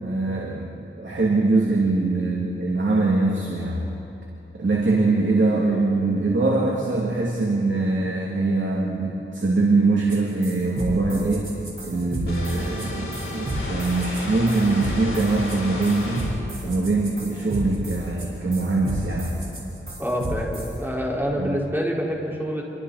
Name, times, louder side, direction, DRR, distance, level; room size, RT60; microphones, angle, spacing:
voice 1, 0.0-3.9 4.5-11.5 11.8-16.3 16.6-19.4 21.3-21.6, right 3 dB, 65° right, -3 dB, 2.7 m, -23 dB
sound 1, 10.1-10.2 10.4-20.7, right 1 dB, 90° right, 5.2 m, -32 dB
sound 2, 12.3-16.4, left 2 dB, 85° left, 4.5 m, -33 dB
voice 2, 20.0-22.6, equal, 10° right, -3 dB, 4.7 m, -26 dB
28.0 x 24.0 x 4.2 m, 2.8 s
wide cardioid pair, 65°, 21 cm